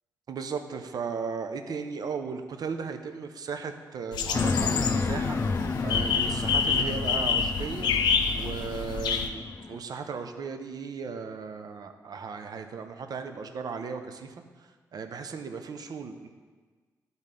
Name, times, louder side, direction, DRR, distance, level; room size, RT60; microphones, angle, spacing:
voice 1, 0.3-5.4 5.8-7.9 8.3-16.3, right 5 dB, 65° right, 7 dB, 0.7 m, -36 dB
sound 1, 4.1-9.3, left 6 dB, 85° left, 0.5 m, -28 dB
sound 2, 4.3-9.8, left 4 dB, 35° left, 0.5 m, -31 dB
12.0 x 4.0 x 3.7 m, 1.5 s
cardioid pair, 60°, 7 cm